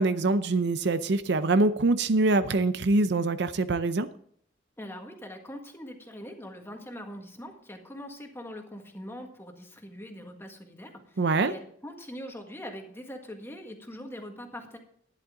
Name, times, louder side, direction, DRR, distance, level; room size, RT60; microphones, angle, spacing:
voice 1, 0.0-4.1 11.2-11.5, right 2 dB, 65° right, 12 dB, 0.6 m, -24 dB
voice 2, 4.8-14.8, equal, 15° left, 3 dB, 1.7 m, -42 dB
11.5 x 11.0 x 3.8 m, 0.63 s
head